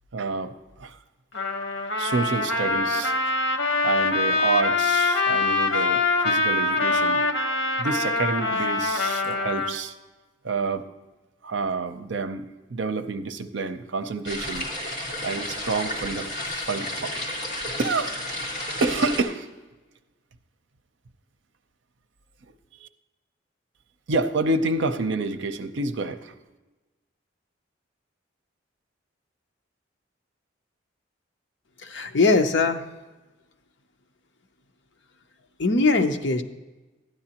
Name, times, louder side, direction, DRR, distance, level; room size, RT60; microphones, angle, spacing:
voice 1, 0.1-0.5 0.8-1.0 2.0-3.1 3.8-7.2 7.8-9.9 10.4-10.8 11.4-17.1 17.8-19.5 22.8-22.9 24.1-26.3, right 3 dB, 70° right, 9 dB, 0.6 m, -28 dB
Trumpet, 1.3-9.8, left 3 dB, 80° left, 1.1 m, -24 dB
sound 1, 14.2-19.2, left 1 dB, 35° left, 2.6 m, -32 dB
voice 2, 31.8-32.8 35.6-36.4, left 3 dB, 65° left, 7 dB, 0.7 m, -21 dB
12.5 x 9.8 x 2.9 m, 1.2 s
head